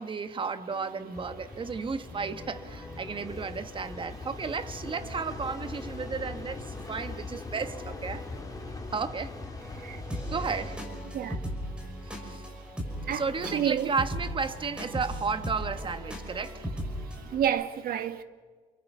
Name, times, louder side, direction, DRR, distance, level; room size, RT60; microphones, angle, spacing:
voice 1, 0.0-8.2 8.9-9.3 10.3-10.8 12.0-12.5 13.1-16.7, right 5 dB, 30° right, 1.5 m, -33 dB
sound 1, 0.7-17.5, equal, 5° right, 6.2 m, -40 dB
sound 2, 1.1-10.8, left 3 dB, 20° left, 2.8 m, -41 dB
voice 2, 13.5-13.9 17.3-18.2, right 9 dB, 60° right, 1.7 m, -29 dB
30.0 x 23.5 x 5.7 m
cardioid pair, 110°, 17 cm